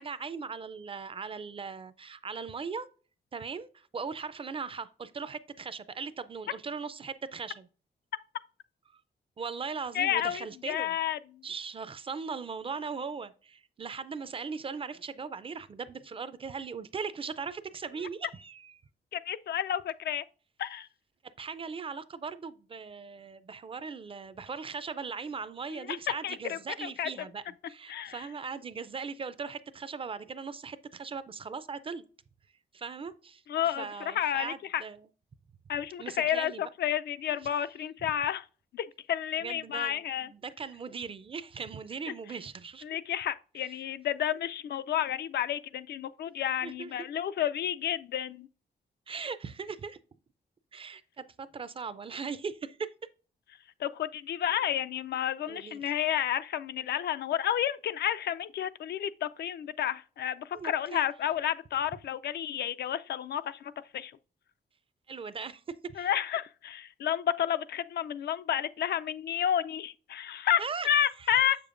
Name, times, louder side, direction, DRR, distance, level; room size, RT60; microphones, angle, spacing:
voice 1, 0.0-2.9 3.3-7.7 8.9-9.0 9.4-10.9 11.4-18.8 21.4-32.0 32.7-35.1 36.0-36.6 39.4-42.8 46.6-46.9 49.1-50.0 50.7-52.9 55.5-55.9 60.5-61.0 65.1-66.1 70.6-70.9 71.2-71.4, right 5 dB, 30° right, 0.4 m, -39 dB
voice 2, 9.9-11.4 19.1-20.2 20.6-20.9 25.7-26.0 26.2-27.1 27.9-28.2 33.5-34.8 35.7-38.4 38.7-40.3 42.8-48.5 53.8-64.1 66.0-71.6, left 10 dB, 70° left, 0.4 m, -31 dB
7.3 x 6.8 x 2.5 m
wide cardioid pair, 155°, 18 cm